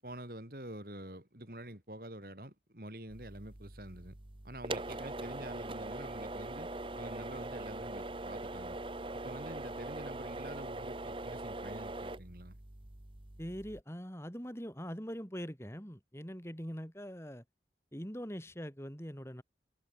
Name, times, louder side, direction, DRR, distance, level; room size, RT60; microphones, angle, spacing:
voice 1, 0.0-4.2 4.4-8.8 9.2-12.6, right 1 dB, 55° right, 5.1 m, -47 dB
sound 1, 3.1-13.8, right 2 dB, 30° right, 1.1 m, -42 dB
voice 2, 13.4-17.4 17.9-19.4, equal, 15° left, 5.6 m, -42 dB
head